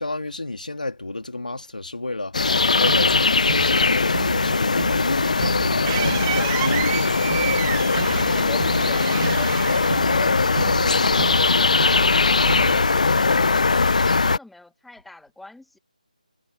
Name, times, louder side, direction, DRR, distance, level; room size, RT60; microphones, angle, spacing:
voice 1, 0.0-5.4 5.6-7.4, left 2 dB, 80° left, 3.5 m, -30 dB
sound 1, 2.3-14.4, left 4 dB, 60° left, 0.8 m, -20 dB
sound 2, 2.8-12.9, right 6 dB, 45° right, 2.0 m, -33 dB
sound 3, 5.2-10.7, right 23 dB, 15° right, 3.0 m, -32 dB
voice 2, 8.3-15.8, left 2 dB, ahead, 2.2 m, -44 dB
figure-of-eight pair, 160°, 4 cm